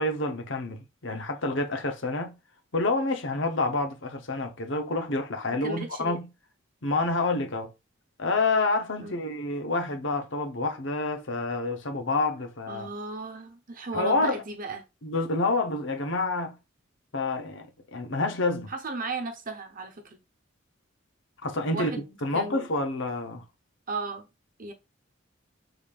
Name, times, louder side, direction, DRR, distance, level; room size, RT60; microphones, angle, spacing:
voice 1, 0.0-2.4 2.7-6.3 6.8-7.7 8.2-12.9 13.9-14.4 15.0-16.6 17.1-18.7 21.4-21.9 22.2-23.4, left 2 dB, 65° left, 0.9 m, -28 dB
voice 2, 5.6-6.2 9.0-9.2 12.7-14.8 18.7-20.2 21.7-22.6 23.9-24.3 24.6-24.7, right 3 dB, 45° right, 1.0 m, -35 dB
5.2 x 3.9 x 2.5 m
head